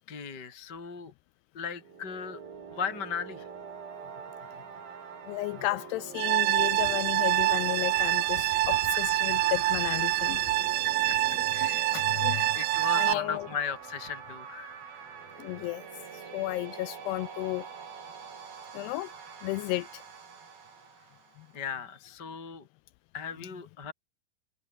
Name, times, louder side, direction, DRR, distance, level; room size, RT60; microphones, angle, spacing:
voice 1, 0.1-1.1 1.5-2.4 2.7-3.5 8.5-8.6 11.1-14.8 21.5-22.6 23.1-23.9, left 7 dB, 25° left, 3.8 m, -37 dB
sound 1, 1.7-21.6, right 6 dB, 50° right, 5.6 m, -45 dB
voice 2, 5.3-10.4 11.6-12.4 13.0-13.5 15.4-15.8 16.3-17.7 18.7-19.1 19.4-20.0, left 19 dB, 85° left, 2.4 m, -33 dB
sound 2, 6.2-13.1, right 16 dB, 80° right, 2.1 m, -26 dB
sound 3, 6.6-11.5, left 5 dB, 50° left, 7.4 m, -47 dB
omnidirectional pair, 5.3 m